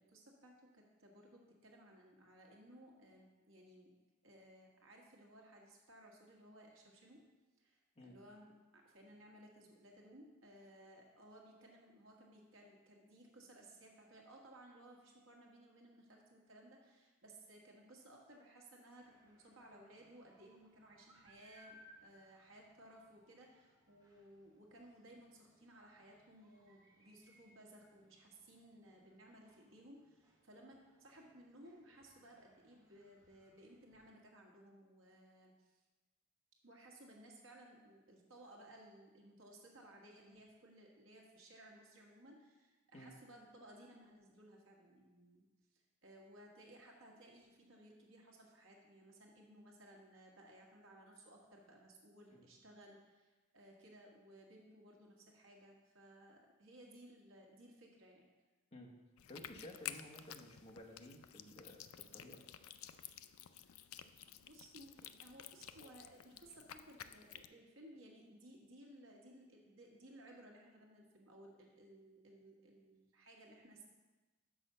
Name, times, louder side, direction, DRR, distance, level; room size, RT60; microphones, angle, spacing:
voice 1, 0.0-3.9 4.2-7.2 7.6-35.8 36.6-58.3 64.4-73.9, right 1 dB, 65° right, 0 dB, 1.4 m, -60 dB
sound 1, 19.0-34.1, left 1 dB, 20° right, 1.1 m, -69 dB
sound 2, 59.2-67.5, left 11 dB, 85° left, 0.4 m, -52 dB
voice 2, 59.3-61.8 62.1-62.4, left 1 dB, 30° left, -1 dB, 1.1 m, -54 dB
6.2 x 5.0 x 6.6 m, 1.2 s
head